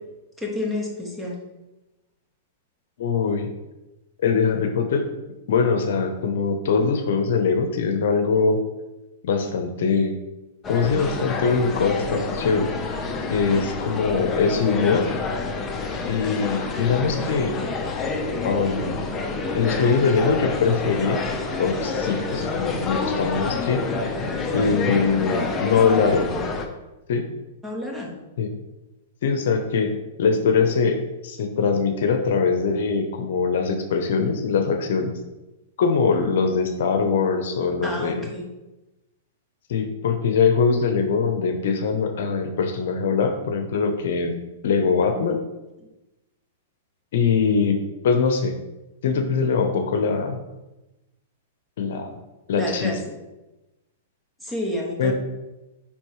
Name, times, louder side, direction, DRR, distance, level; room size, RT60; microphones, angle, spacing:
voice 1, 0.4-1.4 27.6-28.2 37.8-38.5 52.5-53.0 54.4-55.1, left 1 dB, 5° right, -1 dB, 1.5 m, -29 dB
voice 2, 3.0-3.5 4.2-5.0 5.5-8.6 9.2-10.1 10.7-12.7 13.3-15.0 16.1-17.5 18.4-19.0 19.5-21.3 21.6-24.1 24.5-26.3 27.1-27.3 28.4-28.5 29.2-31.0 31.2-35.1 35.8-38.3 39.7-44.4 44.6-45.4 47.1-48.6 49.0-50.4 51.8-52.2 52.5-53.0 55.0-55.1, left 5 dB, 70° left, 6 dB, 0.8 m, -22 dB
sound 1, 10.6-26.7, left 4 dB, 20° left, 0.8 m, -28 dB
9.9 x 3.6 x 3.1 m, 1.0 s
hypercardioid pair, 135°, 0 cm